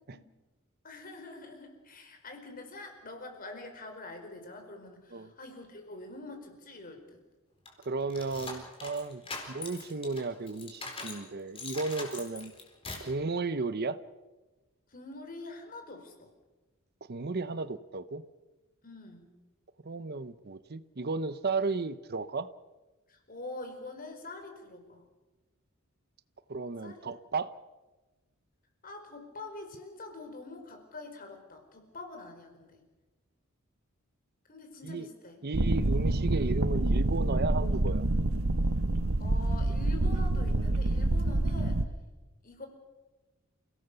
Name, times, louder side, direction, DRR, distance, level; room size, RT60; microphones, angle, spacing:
voice 1, 0.8-7.0 9.2-9.4 14.9-16.3 18.8-19.3 23.1-25.1 26.8-27.1 28.8-32.8 34.5-35.4 39.2-41.8 42.4-42.7, left 2 dB, 40° left, 5 dB, 4.7 m, -45 dB
sound 1, 7.7-11.2 11.6-13.2, left 3 dB, 25° left, 4.4 m, -42 dB
voice 2, 7.8-9.2 9.5-12.5 13.0-14.0 17.1-18.2 19.8-22.5 26.5-27.5 34.8-35.1 35.4-38.0, right 3 dB, 50° right, 15 dB, 0.8 m, -34 dB
sound 2, 35.5-41.9, right 2 dB, 75° right, 1.1 m, -27 dB
28.5 x 17.5 x 6.9 m, 1.2 s
head